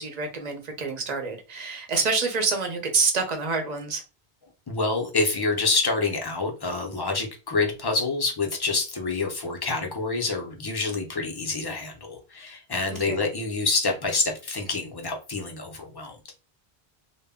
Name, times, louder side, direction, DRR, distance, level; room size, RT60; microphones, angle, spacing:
voice 1, 0.0-4.0 12.9-13.3, right 4 dB, 50° right, 0.7 m, -27 dB
voice 2, 4.7-16.2, left 3 dB, 35° left, 0.4 m, -27 dB
2.1 x 2.0 x 3.4 m
omnidirectional pair, 1.0 m